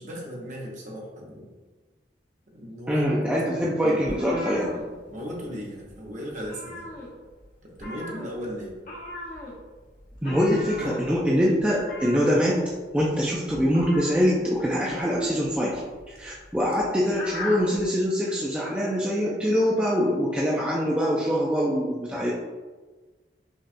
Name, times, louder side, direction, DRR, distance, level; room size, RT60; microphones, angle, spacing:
voice 1, 0.0-1.5 2.5-4.7 5.1-6.9 7.6-8.8 10.8-11.0, equal, 45° right, -2 dB, 0.8 m, -36 dB
voice 2, 2.9-4.7 10.2-12.6 12.9-15.8 16.1-22.3, equal, 5° right, -5 dB, 0.3 m, -24 dB
sound 1, 4.0-5.5 5.8-6.0 6.3-7.4 7.7-17.8, left 2 dB, 50° left, 0.8 m, -38 dB
5.3 x 2.2 x 2.5 m, 1.3 s
head